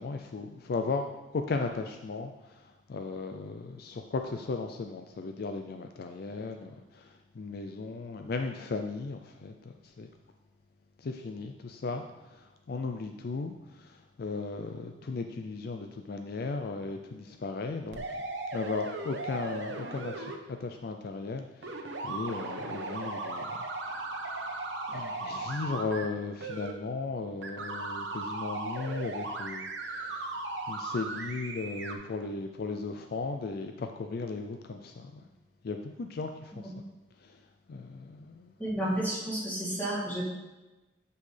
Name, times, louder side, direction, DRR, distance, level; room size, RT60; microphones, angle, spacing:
voice 1, 0.0-9.5 9.8-10.1 11.0-18.0 18.5-23.5 23.8-24.1 24.9-30.4 30.7-35.2 35.6-36.7 37.2-37.4 37.7-38.5, left 3 dB, 55° left, 5 dB, 0.4 m, -36 dB
sound 1, 17.9-20.3 21.6-26.0 26.4-26.7 27.4-31.9, right 2 dB, 85° right, 1.0 m, -37 dB
voice 2, 38.6-40.2, right 1 dB, 10° left, -8 dB, 2.8 m, -31 dB
10.0 x 5.4 x 3.3 m, 1.1 s
head